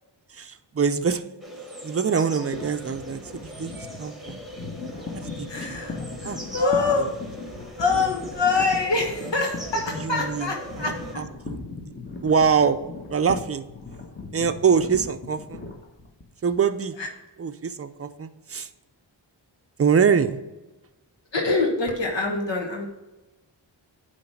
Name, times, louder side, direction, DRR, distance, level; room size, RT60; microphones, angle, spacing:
voice 1, 0.3-1.2 1.8-4.4 5.1-5.8 6.2-6.4 10.0-10.5 10.8-11.6 12.2-12.8 13.1-13.7 14.3-15.6 16.4-17.0 17.4-18.7 19.8-20.4, right 6 dB, 35° right, 10 dB, 0.5 m, -24 dB
sound 1, 1.4-11.2, equal, ahead, 1.3 m, -41 dB
sound 2, 2.5-16.6, left 3 dB, 25° left, 1.3 m, -38 dB
voice 2, 5.5-7.0 7.8-11.2 17.0-17.1 21.3-22.9, left 3 dB, 75° left, 1 dB, 1.2 m, -25 dB
9.4 x 3.2 x 5.8 m, 1.0 s
wide cardioid pair, 80°, 44 cm